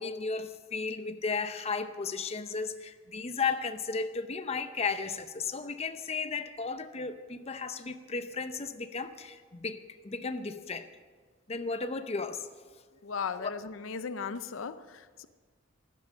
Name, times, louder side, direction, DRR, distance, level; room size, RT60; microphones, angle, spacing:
voice 1, 0.0-10.9 11.5-12.5 13.4-13.5, left 4 dB, 30° left, 9 dB, 0.7 m, -34 dB
voice 2, 13.0-15.3, left 5 dB, 80° left, 13 dB, 0.6 m, -37 dB
14.5 x 11.5 x 6.2 m, 1.5 s
head